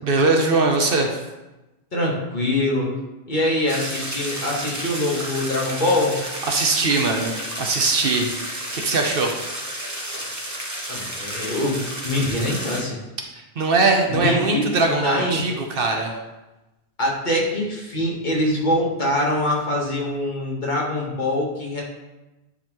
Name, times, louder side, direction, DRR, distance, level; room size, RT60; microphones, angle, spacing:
voice 1, 0.0-1.2 6.5-9.4 13.3-16.1, right 3 dB, 60° right, 2 dB, 1.0 m, -21 dB
voice 2, 1.9-2.9 3.3-6.2 10.9-13.0 14.1-15.4 17.0-21.8, left 1 dB, 45° left, -3 dB, 1.4 m, -24 dB
sound 1, 3.7-12.8, right 1 dB, 20° right, 0.9 m, -32 dB
9.8 x 4.1 x 3.0 m, 1.0 s
omnidirectional pair, 1.1 m